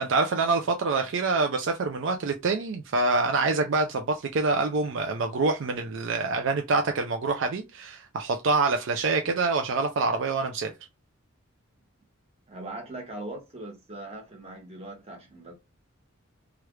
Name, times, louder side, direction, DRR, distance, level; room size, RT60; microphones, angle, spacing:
voice 1, 0.0-10.7, right 3 dB, 65° right, 0.4 m, -26 dB
voice 2, 12.5-15.5, right 2 dB, 30° right, 1.2 m, -40 dB
3.1 x 2.4 x 3.1 m
head